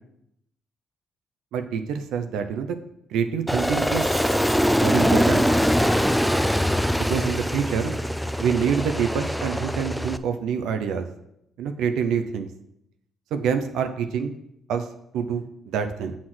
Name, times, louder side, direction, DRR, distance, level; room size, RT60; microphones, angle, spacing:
voice 1, 1.5-2.8 3.1-4.1 4.8-5.5 7.0-7.9 8.4-11.1 11.6-12.5 13.3-14.4 14.7-14.9 15.1-16.2, right 7 dB, 85° right, 7 dB, 0.6 m, -26 dB
Aircraft, 3.5-10.2, equal, ahead, 0.4 m, -23 dB
7.6 x 4.2 x 6.0 m, 0.79 s
cardioid pair, 90°, 0 cm